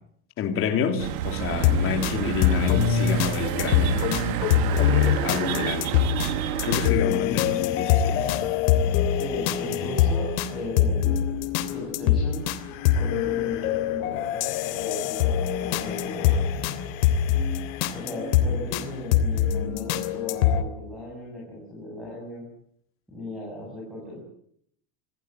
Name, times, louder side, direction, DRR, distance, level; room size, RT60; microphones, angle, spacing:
voice 1, 0.4-4.0 4.6-6.2 6.6-8.3, left 7 dB, 30° left, 5 dB, 3.2 m, -29 dB
sound 1, 1.0-6.9, right 11 dB, 85° right, 2.5 m, -29 dB
sound 2, 1.5-2.1 2.4-6.3 6.6-20.6, left 9 dB, 80° left, 3.3 m, -24 dB
sound 3, 6.7-19.7, left 11 dB, 65° left, 3.9 m, -40 dB
voice 2, 9.2-11.2 11.7-12.4 12.9-14.4 14.8-16.6 17.9-22.4 23.1-24.2, left 1 dB, ahead, -4 dB, 7.4 m, -36 dB
26.0 x 16.5 x 9.1 m, 0.69 s
cardioid pair, 170°, 41 cm